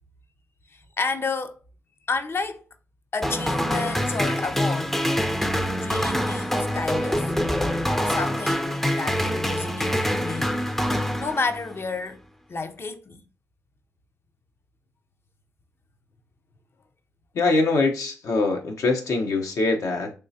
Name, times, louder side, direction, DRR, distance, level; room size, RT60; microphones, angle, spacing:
voice 1, 0.7-1.6 2.1-2.6 3.1-5.0 5.4-5.5 5.8-7.3 8.1-10.7 11.2-12.2 12.5-13.2, left 4 dB, 45° left, 0.6 m, -31 dB
sound 1, 3.2-11.8, equal, 5° left, 0.5 m, -25 dB
voice 2, 17.3-20.1, left 3 dB, 70° left, 0.8 m, -23 dB
3.6 x 3.0 x 2.7 m
supercardioid pair, 50°, 6 cm